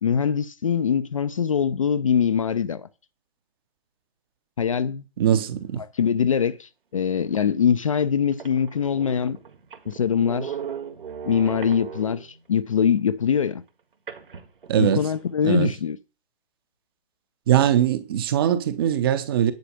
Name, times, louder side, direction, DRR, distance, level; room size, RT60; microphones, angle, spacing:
voice 1, 0.0-2.9 4.6-5.0 5.8-9.4 9.9-10.6 11.2-13.6 14.8-16.0, left 7 dB, 30° left, 0.5 m, -23 dB
voice 2, 5.2-5.8 14.7-15.0 15.4-15.7 17.5-19.5, right 10 dB, 20° right, 0.8 m, -21 dB
sound 1, 7.4-7.5 8.0-8.1 8.3-12.4 14.1-15.2, right 7 dB, 55° right, 1.7 m, -37 dB
10.5 x 4.9 x 8.1 m
figure-of-eight pair, 135°, 32 cm